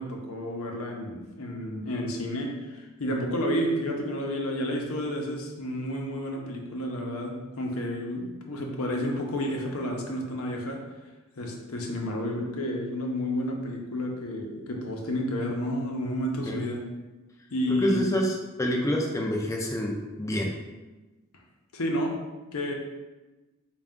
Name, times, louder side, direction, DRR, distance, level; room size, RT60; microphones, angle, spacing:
voice 1, 0.0-10.8 11.4-16.8 17.5-18.1 21.7-22.2 22.5-22.7, equal, 90° left, 0 dB, 0.7 m, -31 dB
voice 2, 17.8-20.5, equal, 15° left, -1 dB, 0.4 m, -27 dB
4.2 x 2.3 x 3.6 m, 1.2 s
head